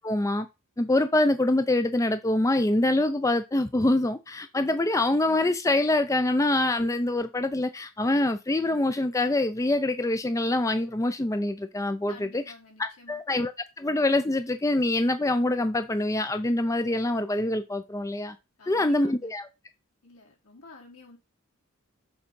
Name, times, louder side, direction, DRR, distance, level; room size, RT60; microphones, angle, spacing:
voice 1, 0.0-0.5 0.8-12.4 12.8-13.5 13.8-18.3 18.7-19.4, left 2 dB, 15° left, 0.4 m, -25 dB
voice 2, 12.1-13.2 18.6-19.3 20.0-21.2, left 3 dB, 80° left, 3.9 m, -51 dB
7.0 x 4.0 x 5.2 m
head